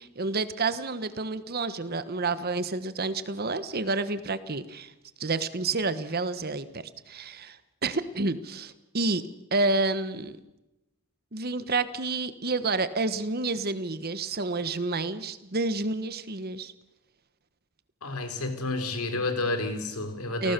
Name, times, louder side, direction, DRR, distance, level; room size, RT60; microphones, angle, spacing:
voice 1, 0.0-4.9 5.2-10.4 11.3-16.7 20.4-20.5, right 3 dB, 45° right, 13 dB, 1.2 m, -29 dB
voice 2, 18.0-20.5, left 2 dB, 85° left, 7 dB, 4.1 m, -30 dB
29.5 x 18.5 x 6.8 m, 0.97 s
head